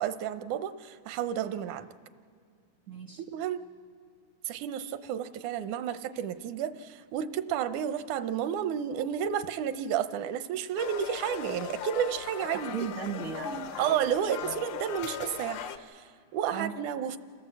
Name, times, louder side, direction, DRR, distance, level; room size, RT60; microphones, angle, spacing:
voice 1, 0.0-1.9 3.2-3.6 4.5-12.9 13.8-17.2, right 9 dB, 85° right, 11 dB, 2.2 m, -31 dB
voice 2, 2.9-3.2 12.7-14.1 14.4-14.5 16.5-16.7, right 6 dB, 60° right, 3 dB, 0.8 m, -36 dB
sound 1, 10.8-15.8, left 8 dB, 70° left, 1.7 m, -39 dB
28.5 x 16.0 x 7.6 m, 2.3 s
omnidirectional pair, 3.4 m